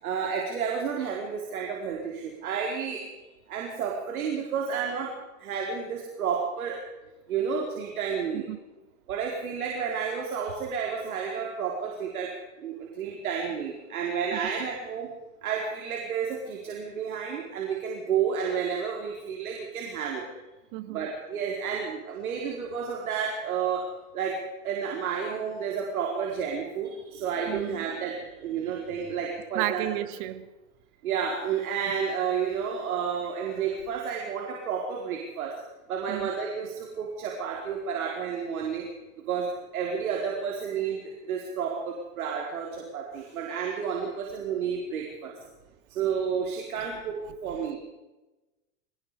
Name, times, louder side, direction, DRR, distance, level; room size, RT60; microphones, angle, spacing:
voice 1, 0.0-3.0 3.5-5.1 5.4-6.8 7.3-8.5 9.1-12.3 12.6-15.1 15.4-20.2 20.9-23.8 24.1-24.3 24.6-29.9 31.0-35.5 35.9-38.9 39.3-41.0 41.2-45.3 45.9-47.8, right 7 dB, 75° right, 4.7 m, -31 dB
voice 2, 20.7-21.1 27.5-27.8 29.5-30.5 36.1-36.3, right 16 dB, 55° right, 2.0 m, -32 dB
26.0 x 20.0 x 5.1 m
hypercardioid pair, 100°, 43 cm